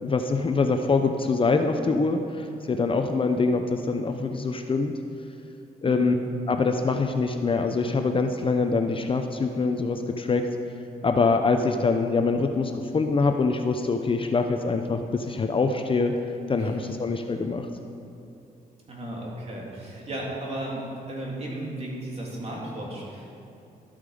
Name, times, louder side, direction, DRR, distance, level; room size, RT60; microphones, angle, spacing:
voice 1, 0.0-4.9 5.8-6.1 6.5-10.5 11.0-16.1 16.5-17.7, left 4 dB, 35° left, 6 dB, 0.7 m, -24 dB
voice 2, 5.8-6.2 16.6-16.9 18.9-23.3, right 1 dB, 40° right, -3 dB, 3.1 m, -35 dB
13.0 x 8.8 x 5.1 m, 2.7 s
cardioid pair, 105°, 16 cm